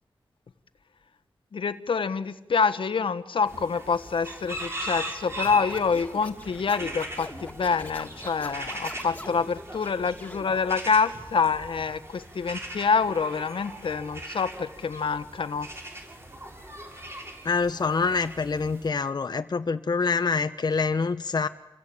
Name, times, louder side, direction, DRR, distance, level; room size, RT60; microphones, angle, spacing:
voice 1, 1.5-15.7, left 5 dB, 75° left, 12 dB, 1.4 m, -26 dB
sound 1, 3.5-18.9, equal, 30° right, 6.8 m, -40 dB
Scratching (performance technique), 5.4-9.4 9.8-10.4, left 1 dB, 15° left, 2.7 m, -42 dB
voice 2, 17.4-21.5, left 4 dB, 50° left, 8 dB, 1.0 m, -26 dB
28.5 x 22.0 x 8.7 m, 0.93 s
cardioid pair, 65°, 9 cm